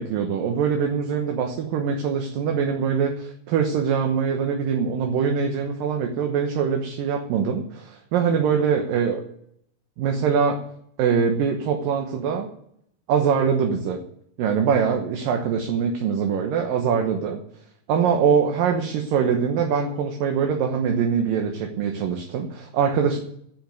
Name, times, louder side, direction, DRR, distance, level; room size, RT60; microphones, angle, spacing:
voice 1, 0.0-9.2 10.0-10.6 11.0-12.5 13.1-14.0 14.4-17.4 17.9-23.2, right 6 dB, 70° right, 3 dB, 2.7 m, -23 dB
10.5 x 7.9 x 9.2 m, 0.69 s
omnidirectional pair, 4.4 m